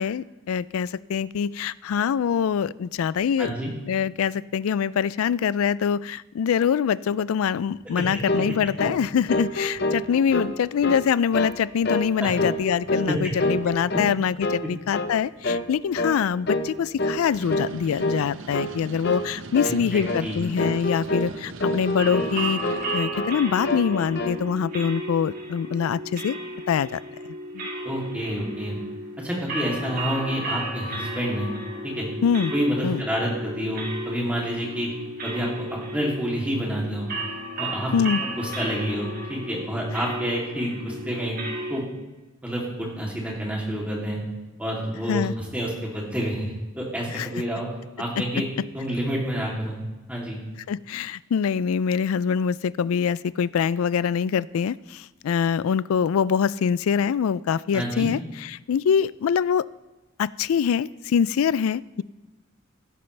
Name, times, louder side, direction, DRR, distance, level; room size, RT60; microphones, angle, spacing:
voice 1, 0.0-3.5 3.9-22.6 22.9-26.4 26.7-27.0 27.5-27.7 32.2-32.5 32.8-33.0 37.9-38.2 45.1-45.3 47.1-47.3 48.2-48.3 50.7-59.7 60.2-62.0, left 7 dB, 90° left, 19 dB, 0.3 m, -24 dB
voice 2, 3.4-3.7 8.0-8.1 12.2-12.3 13.1-13.2 19.6-20.4 27.8-28.8 29.2-31.5 31.8-32.1 32.5-34.9 35.2-37.1 37.6-37.9 38.2-41.4 41.7-41.8 42.4-44.2 44.6-45.3 45.5-47.7 48.0-48.5 48.7-49.8 50.1-50.4 57.7-58.1, equal, 5° right, -4 dB, 2.8 m, -28 dB
sound 1, 8.3-8.5 8.8-9.0 9.3-10.5 10.8-11.1 11.3-11.6 11.8-12.1 12.4-13.1 13.4-14.2 14.4-14.6 14.9-15.1 15.4-15.7 16.0-16.2 16.5-16.7 17.0-17.2 17.5-17.7 18.0-18.2 18.5-18.7 19.0-19.3 19.5-19.8 20.0-20.3 20.6-21.3 21.6-22.3 22.6-23.4 23.6-24.4, left 1 dB, 50° left, 0.8 m, -27 dB
sound 2, 17.3-23.0, right 3 dB, 65° right, 0.7 m, -40 dB
sound 3, 22.0-41.8, right 1 dB, 45° right, 2.0 m, -34 dB
16.0 x 12.0 x 3.3 m, 1.1 s
head